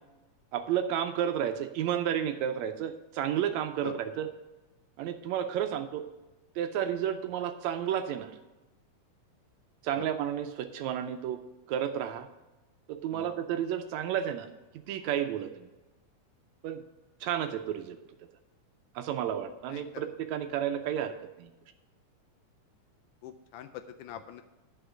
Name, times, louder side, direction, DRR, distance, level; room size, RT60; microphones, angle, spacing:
voice 1, 0.5-4.3 5.0-6.0 6.6-8.3 9.8-11.4 11.7-12.3 12.9-14.5 14.9-15.7 16.6-16.8 17.2-18.0 18.9-21.5, right 10 dB, 80° right, 8 dB, 1.7 m, -31 dB
voice 2, 19.7-20.1 23.2-24.4, left 11 dB, 80° left, 7 dB, 1.9 m, -44 dB
10.0 x 5.0 x 7.0 m, 1.1 s
omnidirectional pair, 3.6 m